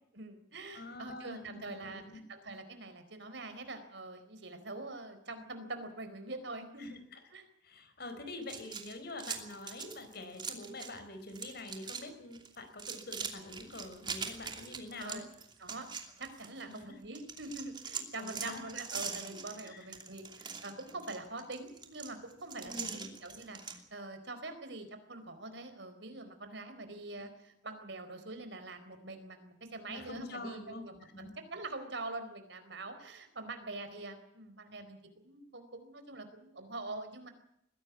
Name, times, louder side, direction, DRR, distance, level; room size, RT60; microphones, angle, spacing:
voice 1, 0.1-7.0 7.3-7.4 15.0-15.3 15.6-15.9 16.2-37.3, right 2 dB, 65° right, 8 dB, 4.4 m, -44 dB
voice 2, 0.7-2.2 6.8-7.2 7.6-15.2 16.7-16.8 18.2-18.6 19.3-19.9 22.6-23.1 27.1-27.3 29.9-31.3, left 2 dB, 55° left, 8 dB, 4.6 m, -46 dB
sound 1, 8.4-11.0 11.3-12.0 12.3-16.8 17.1-23.8, right 6 dB, 25° right, 2.8 m, -42 dB
21.5 x 16.5 x 8.4 m, 0.76 s
head